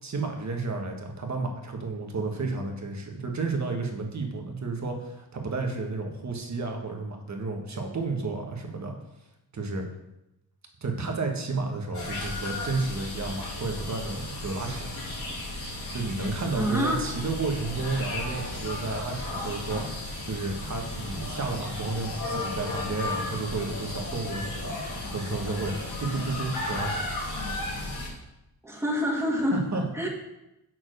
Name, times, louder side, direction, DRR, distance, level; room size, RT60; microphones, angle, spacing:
voice 1, 0.0-8.9 9.5-9.9 10.8-14.9 15.9-24.7 25.1-27.0 29.5-29.8, right 3 dB, 45° right, 2 dB, 1.4 m, -32 dB
sound 1, 11.9-28.1, left 2 dB, 65° left, 2.9 m, -34 dB
voice 2, 16.5-17.1 28.6-30.1, equal, 5° right, -2 dB, 1.9 m, -27 dB
6.0 x 4.4 x 6.4 m, 0.91 s
cardioid pair, 90°, 40 cm